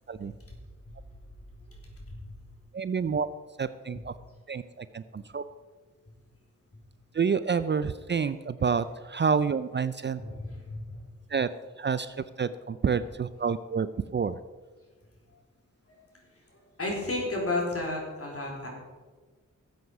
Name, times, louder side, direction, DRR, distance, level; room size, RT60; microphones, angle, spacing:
voice 1, 2.7-3.3 3.6-4.1 4.5-5.4 7.1-10.2 11.3-11.5 11.8-14.4, right 6 dB, 35° right, 14 dB, 0.4 m, -28 dB
voice 2, 10.2-11.0 15.9-16.0 16.8-18.7, left 2 dB, 45° left, -1 dB, 4.0 m, -32 dB
13.5 x 7.9 x 4.8 m, 1.4 s
cardioid pair, 60°, 31 cm